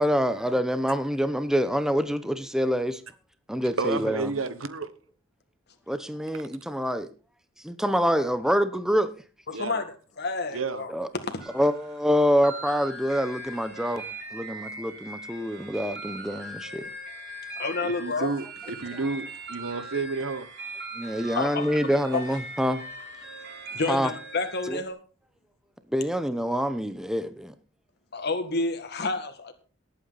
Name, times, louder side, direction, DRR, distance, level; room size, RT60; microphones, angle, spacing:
voice 1, 0.0-3.0 3.5-4.3 5.9-7.1 7.6-9.1 10.9-11.1 11.5-16.8 21.0-22.8 23.9-24.1 24.7-24.8 25.9-27.5, equal, 5° right, 0.8 m, -26 dB
voice 2, 3.8-4.9 9.5-9.8 10.5-10.9 17.8-20.5, right 4 dB, 80° right, 1.1 m, -31 dB
voice 3, 9.5-9.9 10.2-10.9 11.2-11.4 17.6-18.3 21.4-21.6 22.1-22.2 23.7-25.0 28.1-29.5, left 3 dB, 55° left, 1.8 m, -29 dB
sound 1, 11.4-24.9, right 2 dB, 55° right, 7.4 m, -40 dB
19.0 x 8.7 x 4.0 m
head